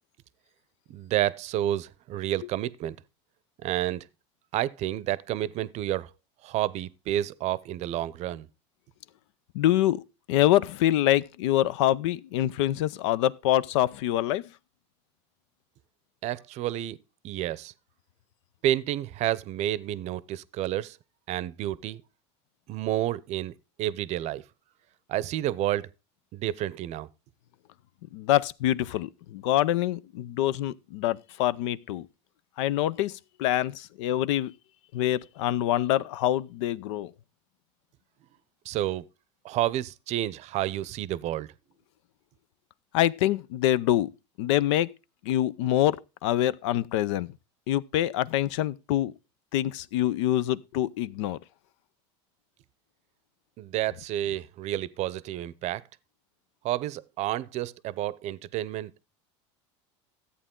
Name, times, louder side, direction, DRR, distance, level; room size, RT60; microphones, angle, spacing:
voice 1, 0.9-3.0 3.6-4.0 4.5-6.1 6.4-8.5 16.2-17.0 17.2-17.7 18.6-21.0 21.3-22.0 22.7-23.5 23.8-24.4 25.1-25.9 26.3-27.1 38.6-39.0 39.4-41.5 53.6-55.8 56.6-58.9, right 13 dB, 45° right, 0.6 m, -30 dB
voice 2, 9.5-10.0 10.3-14.4 28.1-32.1 32.6-34.5 34.9-37.1 42.9-44.1 44.4-44.9 45.2-46.0 46.2-47.3 47.7-49.1 49.5-51.4, left 13 dB, 80° left, 0.6 m, -25 dB
14.0 x 8.4 x 3.7 m
supercardioid pair, 120°, 15 cm